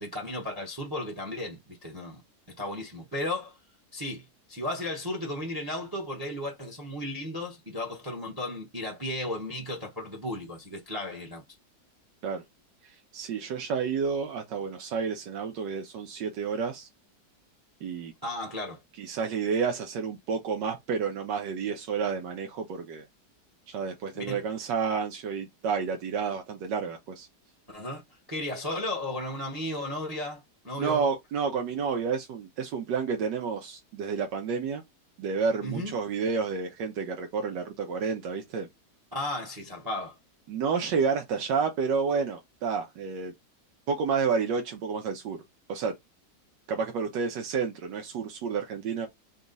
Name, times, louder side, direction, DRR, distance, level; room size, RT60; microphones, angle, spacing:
voice 1, 0.0-2.2 2.6-3.6 3.9-11.4 18.2-18.8 24.1-24.4 27.7-28.0 28.3-31.0 35.6-35.9 39.1-40.1, left 1 dB, 15° right, 0.8 m, -34 dB
voice 2, 13.1-16.9 17.8-18.1 19.0-23.0 23.7-27.3 30.8-34.8 35.2-38.7 40.5-43.3 43.9-45.4 45.7-45.9 46.7-49.1, right 5 dB, 90° right, 1.4 m, -30 dB
4.2 x 2.3 x 3.9 m
omnidirectional pair, 1.9 m